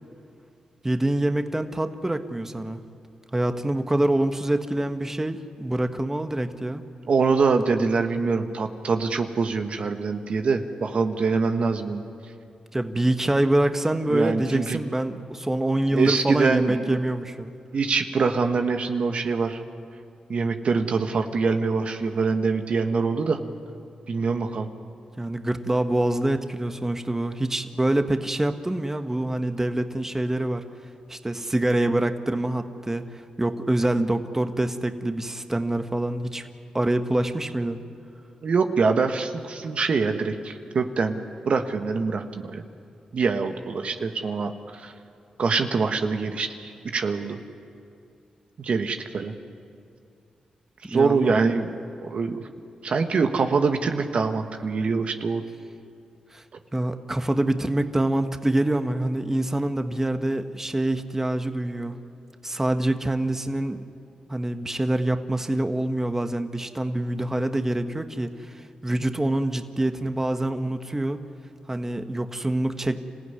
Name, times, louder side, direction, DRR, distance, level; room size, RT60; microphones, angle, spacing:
voice 1, 0.8-2.8 3.3-6.8 12.7-17.5 25.2-30.6 31.1-36.5 36.7-37.8 50.8-51.3 56.3-56.4 56.7-62.0 62.4-63.8 64.3-71.2 71.7-73.0, right 1 dB, 20° right, 7 dB, 1.4 m, -25 dB
voice 2, 7.1-12.0 14.1-14.8 15.9-17.0 17.7-19.6 20.3-23.4 24.1-24.7 38.4-41.2 41.5-42.6 43.1-44.9 45.4-47.4 48.6-49.3 50.9-51.7 52.0-52.5 52.8-55.4, right 4 dB, 60° right, 6 dB, 1.4 m, -24 dB
26.0 x 15.5 x 9.7 m, 2.4 s
supercardioid pair, 50°, 2 cm